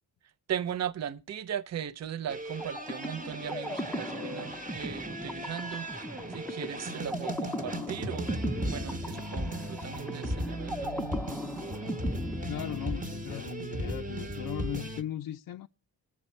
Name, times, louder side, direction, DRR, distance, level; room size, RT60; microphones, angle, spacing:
voice 1, 0.5-5.9 6.3-11.1, right 9 dB, 40° right, 0.6 m, -38 dB
sound 1, 2.3-15.0, right 1 dB, 20° right, 1.1 m, -37 dB
sound 2, 2.6-13.3, equal, 5° left, 0.6 m, -38 dB
voice 2, 12.4-15.7, left 11 dB, 55° left, 0.5 m, -37 dB
19.5 x 7.2 x 4.2 m
cardioid pair, 80°, 40 cm